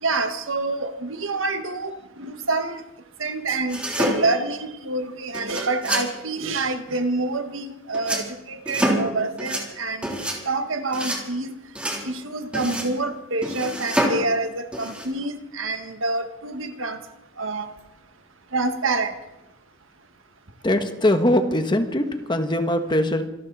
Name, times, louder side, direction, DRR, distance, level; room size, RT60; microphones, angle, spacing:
voice 1, 0.0-2.8 3.2-10.1 10.5-11.5 12.0-17.0 17.4-17.7 18.5-19.1, right 3 dB, 70° right, 7 dB, 1.8 m, -27 dB
sound 1, 3.7-4.5 5.3-6.1 7.9-8.3 8.7-9.1 9.4-9.7 10.0-10.4 10.9-11.2 11.8-12.0 12.5-13.0 13.4-14.2 14.7-15.1, equal, 5° right, 3.5 m, -26 dB
voice 2, 20.6-23.3, left 1 dB, 25° left, 7 dB, 1.4 m, -21 dB
27.0 x 13.0 x 4.2 m, 0.98 s
head